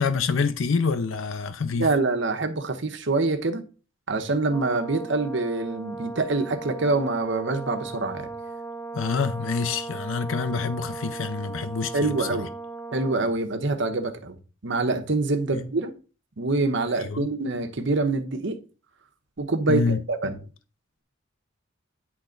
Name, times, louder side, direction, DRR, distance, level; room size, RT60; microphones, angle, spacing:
voice 1, 0.0-1.9 8.9-12.5 15.5-15.6 17.1-17.3 19.7-20.0, left 5 dB, 85° left, 0.5 m, -26 dB
voice 2, 1.8-3.6 4.1-8.3 11.9-12.5 12.9-14.4 14.6-15.9 16.4-18.6 19.4-20.4, right 3 dB, 65° right, 1.0 m, -25 dB
Brass instrument, 4.5-13.4, right 3 dB, 10° left, 0.4 m, -37 dB
10.0 x 3.3 x 3.8 m
head